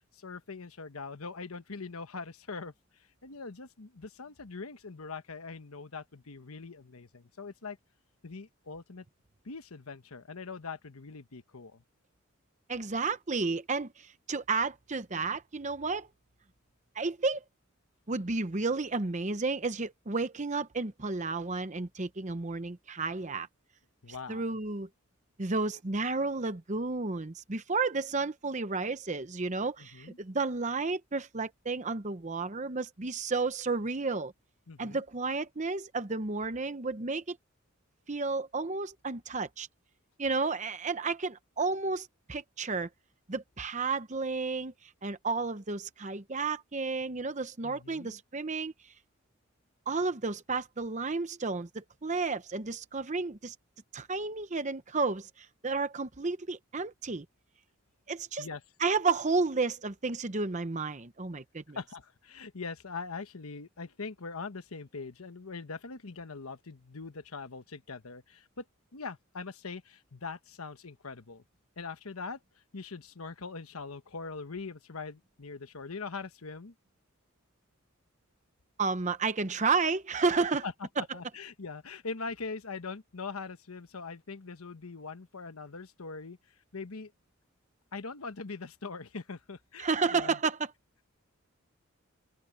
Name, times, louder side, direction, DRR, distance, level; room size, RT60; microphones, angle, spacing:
voice 1, 0.1-2.7 3.2-7.8 8.2-9.0 9.4-11.8 24.0-24.6 29.8-30.2 34.7-35.0 47.6-48.2 58.4-58.6 61.7-68.6 68.9-71.4 71.8-72.4 72.7-76.7 80.6-80.7 81.0-86.4 86.7-87.1 87.9-90.4, left 4 dB, 90° left, 1.1 m, -42 dB
voice 2, 12.7-16.1 16.9-17.4 18.1-23.5 24.3-24.9 25.4-34.3 34.8-37.4 38.1-39.7 40.2-42.9 43.3-48.9 49.9-53.5 53.9-57.3 58.1-58.5 58.8-61.8 78.8-80.6 81.0-81.1 89.8-90.7, right 4 dB, 35° right, 0.8 m, -32 dB
open air
head